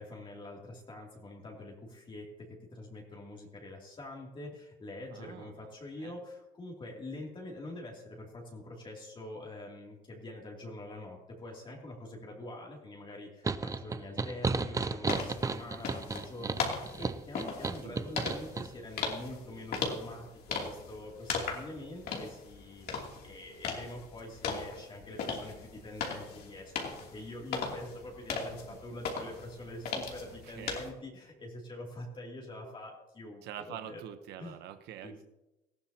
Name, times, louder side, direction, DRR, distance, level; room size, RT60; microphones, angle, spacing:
voice 1, 0.0-34.0 34.4-34.6 35.0-35.2, left 1 dB, 30° left, -2 dB, 2.8 m, -45 dB
voice 2, 5.1-5.7 6.0-6.2 17.8-18.3 28.4-28.8 30.2-30.8 33.4-35.2, right 10 dB, 80° right, 10 dB, 0.9 m, -46 dB
sound 1, 13.4-18.7, right 4 dB, 20° right, 0.6 m, -33 dB
sound 2, 15.1-30.9, left 5 dB, 65° left, 2.8 m, -38 dB
19.0 x 14.5 x 2.8 m, 0.99 s
cardioid pair, 110°, 17 cm